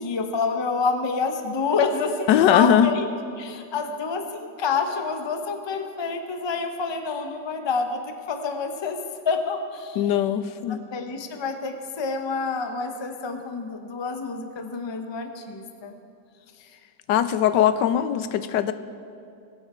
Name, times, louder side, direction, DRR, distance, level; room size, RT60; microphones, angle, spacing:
voice 1, 0.0-3.1 3.4-9.0 9.2-10.0 10.7-15.9, left 4 dB, 25° left, 5 dB, 0.5 m, -28 dB
voice 2, 2.3-2.9 10.0-10.8 17.1-18.7, left 10 dB, 85° left, 12 dB, 1.2 m, -20 dB
22.0 x 8.9 x 4.4 m, 2.5 s
omnidirectional pair, 1.9 m